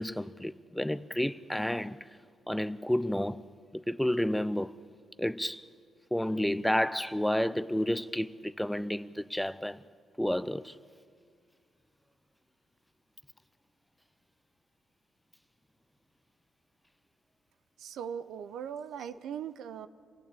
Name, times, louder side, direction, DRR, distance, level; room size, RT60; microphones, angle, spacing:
voice 1, 0.0-2.1 2.5-3.4 3.7-4.7 5.2-5.6 6.1-9.8 10.2-10.8, left 1 dB, 5° left, 0.5 m, -30 dB
voice 2, 17.8-19.9, right 8 dB, 75° right, 0.8 m, -39 dB
26.5 x 16.0 x 8.5 m
cardioid pair, 90°, 0 cm